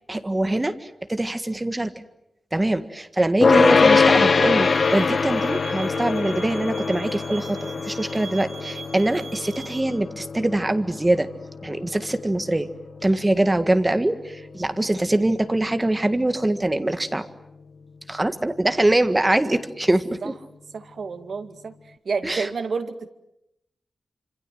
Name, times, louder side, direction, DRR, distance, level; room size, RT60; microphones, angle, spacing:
voice 1, 0.1-1.9 2.5-7.6 7.8-11.3 11.6-12.7 13.0-17.3 18.1-20.3 22.2-22.5, right 1 dB, 15° right, 9 dB, 1.7 m, -23 dB
sound 1, 3.4-14.7, left 4 dB, 50° left, 1.1 m, -23 dB
sound 2, 4.6-9.8, right 5 dB, 85° right, 4.3 m, -41 dB
voice 2, 20.7-21.7 22.0-23.1, right 5 dB, 70° right, 7 dB, 2.2 m, -30 dB
27.5 x 26.5 x 7.8 m, 0.84 s
wide cardioid pair, 160°, 0 cm